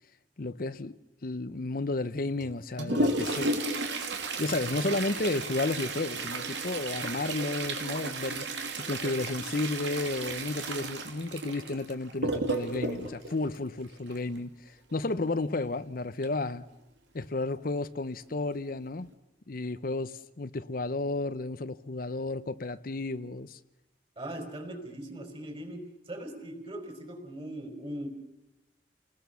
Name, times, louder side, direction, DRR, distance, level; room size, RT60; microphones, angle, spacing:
voice 1, 0.4-3.6 4.4-8.5 8.8-16.7 17.1-19.1 19.5-23.6, left 2 dB, 55° left, 0.7 m, -32 dB
Toilet flush, 2.4-14.4 16.2-16.3 16.7-16.8 17.5-17.6 18.3-18.5 19.0-19.1, right 2 dB, 85° right, 2.8 m, -33 dB
voice 2, 24.2-28.1, right 1 dB, 30° right, 5.3 m, -40 dB
30.0 x 20.0 x 6.9 m
head